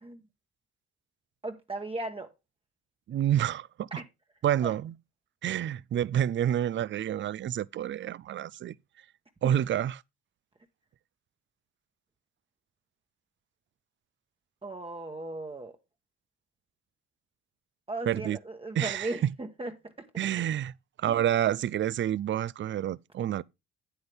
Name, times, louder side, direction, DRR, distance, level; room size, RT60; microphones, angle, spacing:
voice 1, 1.4-2.3 3.9-4.0 4.6-4.7 14.6-15.8 17.9-19.7 20.0-20.3 21.1-21.2, right 2 dB, 20° right, 1.1 m, -37 dB
voice 2, 3.1-4.0 4.4-4.9 5.4-8.8 9.4-10.0 18.1-18.4 18.8-19.3 20.2-20.7 21.0-23.4, right 11 dB, 40° right, 0.4 m, -28 dB
8.8 x 7.9 x 3.4 m
cardioid pair, 90°, 30 cm